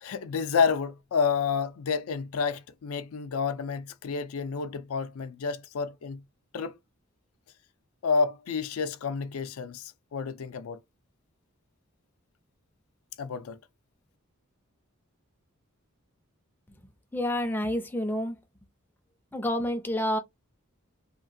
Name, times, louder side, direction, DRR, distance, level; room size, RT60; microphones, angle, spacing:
voice 1, 0.0-6.2 6.5-6.7 8.0-10.8 13.2-13.6, left 5 dB, 80° left, 0.4 m, -29 dB
voice 2, 17.1-18.4 19.3-20.2, left 1 dB, 10° left, 0.4 m, -28 dB
2.8 x 2.4 x 2.6 m
head